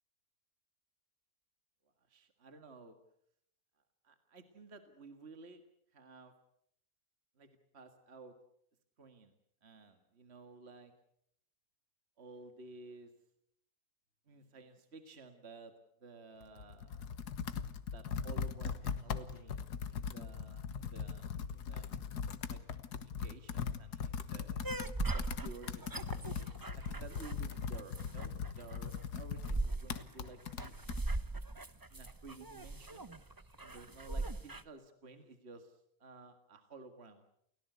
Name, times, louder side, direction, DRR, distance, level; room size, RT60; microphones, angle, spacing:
voice 1, 2.0-3.0 4.0-5.6 5.9-6.3 7.4-8.4 9.0-9.3 9.6-10.9 12.2-13.1 14.3-15.7 16.0-17.2 17.9-22.1 22.5-24.7 25.1-31.5 31.9-33.1 33.6-37.2, right 3 dB, 40° right, 7 dB, 2.2 m, -54 dB
Computer keyboard, 16.4-31.0, left 6 dB, 90° left, 1.8 m, -40 dB
sound 1, 24.6-34.6, right 2 dB, 15° right, 0.8 m, -40 dB
29.5 x 17.5 x 8.1 m, 0.71 s
omnidirectional pair, 1.7 m